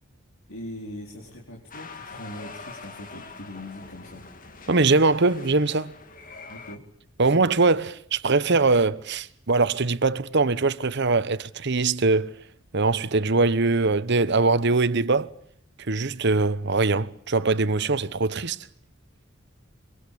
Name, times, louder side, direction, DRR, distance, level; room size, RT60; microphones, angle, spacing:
voice 1, 0.5-4.2 6.5-6.8, left 1 dB, 80° left, 4.4 m, -40 dB
sound 1, 1.7-6.8, left 4 dB, 40° left, 2.2 m, -44 dB
voice 2, 4.7-5.9 7.2-12.4 12.7-15.3 15.8-18.6, right 3 dB, 55° right, 1.0 m, -22 dB
24.0 x 23.5 x 8.6 m
head